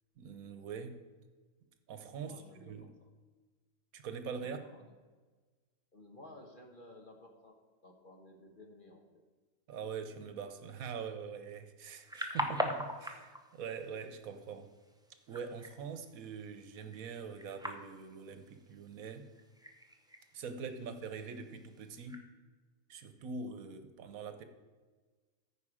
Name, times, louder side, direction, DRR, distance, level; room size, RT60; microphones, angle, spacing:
voice 1, 0.2-1.0 1.9-2.3 2.6-2.8 3.9-4.6 9.7-14.7 15.3-19.3 20.3-22.2 22.9-24.4, right 5 dB, 85° right, 8 dB, 1.3 m, -43 dB
voice 2, 2.2-3.1 4.4-4.9 5.9-9.2 20.7-20.9, left 1 dB, 40° left, 2 dB, 1.4 m, -55 dB
sound 1, 11.9-22.2, equal, 5° right, 0.4 m, -43 dB
14.0 x 4.8 x 4.9 m, 1.3 s
omnidirectional pair, 1.4 m